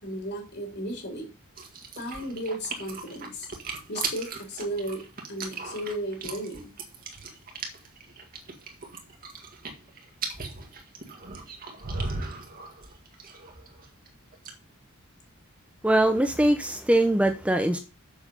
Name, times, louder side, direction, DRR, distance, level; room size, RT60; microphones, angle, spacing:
voice 1, 0.0-1.3 2.0-3.5 3.9-5.0 5.3-6.7, right 1 dB, 50° left, 3.3 m, -34 dB
sound 1, 1.6-14.1 14.3-14.5, right 4 dB, 40° right, 1.8 m, -37 dB
voice 2, 15.8-17.8, right 1 dB, 5° right, 0.6 m, -22 dB
7.2 x 6.4 x 5.4 m
head